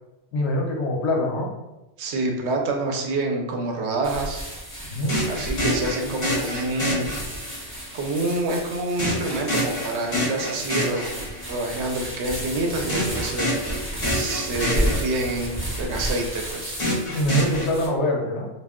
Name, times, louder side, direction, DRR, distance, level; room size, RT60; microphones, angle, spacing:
voice 1, 0.3-1.5 4.9-5.2 17.1-18.5, left 1 dB, 75° left, 1 dB, 0.9 m, -24 dB
voice 2, 2.0-4.4 5.3-7.2 7.5-16.8, right 2 dB, 80° right, 2 dB, 0.8 m, -27 dB
sound 1, 4.0-17.9, right 1 dB, 15° right, 0.4 m, -33 dB
sound 2, 5.1-7.7 9.0-11.6 12.9-15.6 16.8-17.7, left 1 dB, 35° left, 0.6 m, -27 dB
2.3 x 2.1 x 3.5 m, 1.0 s
omnidirectional pair, 1.2 m